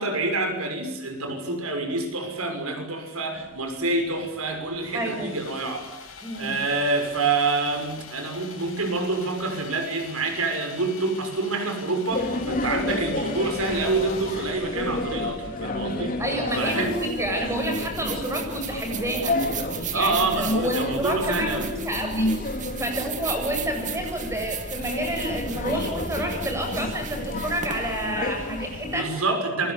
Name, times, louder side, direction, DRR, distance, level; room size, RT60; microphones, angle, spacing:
voice 1, 0.0-5.9 6.3-16.2 16.5-16.9 19.9-21.7 28.8-29.7, right 3 dB, 80° right, 6 dB, 6.3 m, -27 dB
Sawing, 3.3-22.7, left 5 dB, 65° left, 7.2 m, -45 dB
voice 2, 4.9-5.4 6.2-6.6 16.2-19.3 19.8-22.3 22.8-29.1, right 1 dB, 15° right, 3 dB, 7.9 m, -29 dB
sound 1, 12.1-29.0, left 1 dB, 40° left, 3.7 m, -31 dB
sound 2, 16.5-29.0, right 9 dB, 35° right, 2.3 m, -38 dB
28.0 x 24.5 x 8.5 m, 0.88 s
head